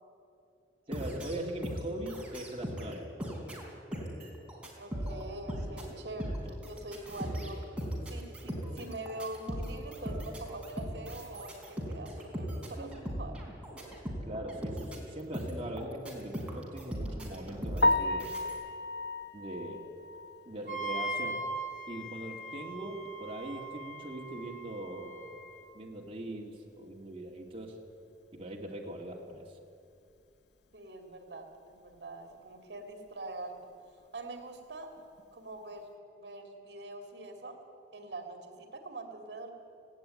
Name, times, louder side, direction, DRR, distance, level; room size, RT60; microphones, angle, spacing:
sound 1, 0.9-2.9 3.2-18.5, equal, 5° right, 4.2 m, -38 dB
voice 1, 0.9-3.1 6.2-6.5 14.3-18.3 19.3-19.9 20.5-21.4 21.9-25.4 25.7-27.8 28.3-29.4, right 1 dB, 30° right, -1 dB, 2.3 m, -41 dB
voice 2, 4.8-7.6 8.1-13.4 30.7-33.7 34.1-34.9 35.3-37.6 37.9-39.5, right 2 dB, 70° right, 5 dB, 2.4 m, -44 dB
Piano, 17.8-21.8 22.1-22.3 22.7-22.8 23.2-23.3 26.4-26.5 35.0-35.2, left 2 dB, 75° left, 1.0 m, -33 dB
Wind instrument woodwind instrument, 20.7-25.6, right 2 dB, 50° left, 2.3 m, -40 dB
18.5 x 17.0 x 9.0 m, 2.4 s
head